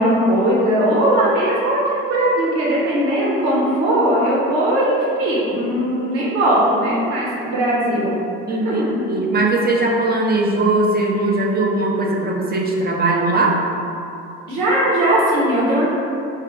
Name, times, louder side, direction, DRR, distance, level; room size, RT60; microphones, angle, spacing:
voice 1, 0.0-8.2 8.5-9.0 14.5-15.9, right 1 dB, 75° right, -5 dB, 1.3 m, -19 dB
voice 2, 8.5-13.6, right 2 dB, 30° right, -1 dB, 0.8 m, -19 dB
4.9 x 2.7 x 3.7 m, 2.8 s
hypercardioid pair, 65°, 31 cm